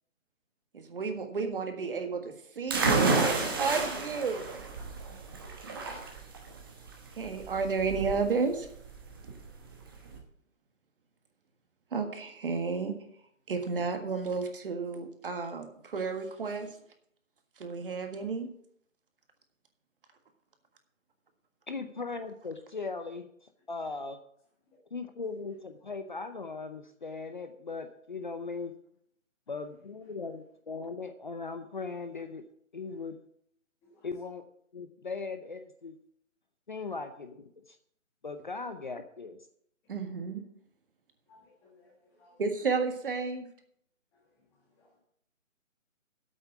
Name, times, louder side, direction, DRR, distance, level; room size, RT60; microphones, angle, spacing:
voice 1, 0.7-4.5 7.1-8.7 11.9-12.9 13.5-16.7 17.6-18.5 39.9-40.4 42.4-43.5, right 4 dB, 40° right, 6 dB, 1.7 m, -32 dB
sound 1, 2.7-10.2, right 3 dB, 15° right, 1.0 m, -31 dB
voice 2, 21.7-24.2 24.9-28.7 29.5-32.4 32.7-33.2 34.0-34.4 34.7-35.9 36.7-37.8 38.2-39.4, left 4 dB, 35° left, 8 dB, 0.7 m, -39 dB
voice 3, 41.3-42.4 44.1-44.2 44.5-45.0, left 2 dB, 5° left, -2 dB, 1.5 m, -63 dB
8.7 x 8.2 x 7.2 m, 0.68 s
hypercardioid pair, 170°, 40 cm